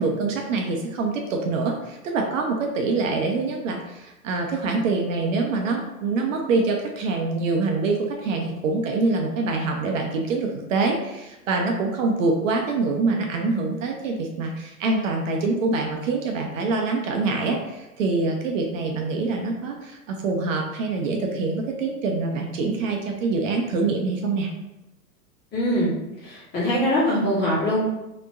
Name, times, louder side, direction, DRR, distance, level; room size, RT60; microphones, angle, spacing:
voice 1, 0.0-24.5, right 3 dB, 55° right, 2 dB, 0.6 m, -25 dB
voice 2, 25.5-25.9 26.2-27.8, equal, 20° left, -7 dB, 1.4 m, -22 dB
3.3 x 2.9 x 2.6 m, 0.97 s
hypercardioid pair, 120°, 47 cm